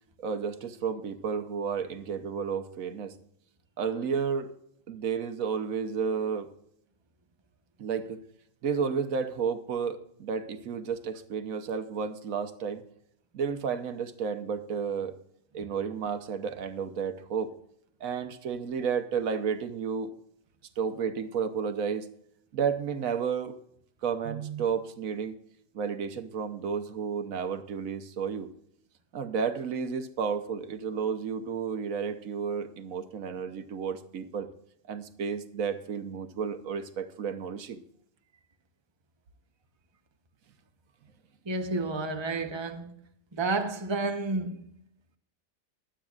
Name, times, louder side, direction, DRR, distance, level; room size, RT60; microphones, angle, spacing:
voice 1, 0.2-3.1 3.8-4.5 4.9-6.5 7.8-8.2 8.6-12.8 13.3-15.1 15.5-17.5 18.0-20.1 20.8-22.1 22.5-23.6 24.0-25.4 25.7-28.5 29.1-34.5 34.9-37.8, right 6 dB, 85° right, 1.3 m, -32 dB
voice 2, 41.5-42.9 43.3-44.6, right 3 dB, 25° right, 0.9 m, -30 dB
23.0 x 8.8 x 2.4 m
omnidirectional pair, 1.4 m